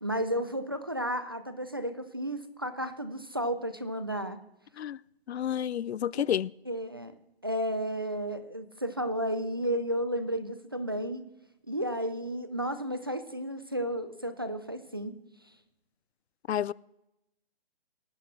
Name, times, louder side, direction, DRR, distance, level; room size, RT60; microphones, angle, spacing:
voice 1, 0.0-4.4 6.7-7.1 7.4-11.3 11.7-15.1, equal, 25° right, 0.4 m, -32 dB
voice 2, 5.3-6.5 16.5-16.7, left 10 dB, 80° left, 0.5 m, -30 dB
18.5 x 14.0 x 3.1 m
hypercardioid pair, 165°, 32 cm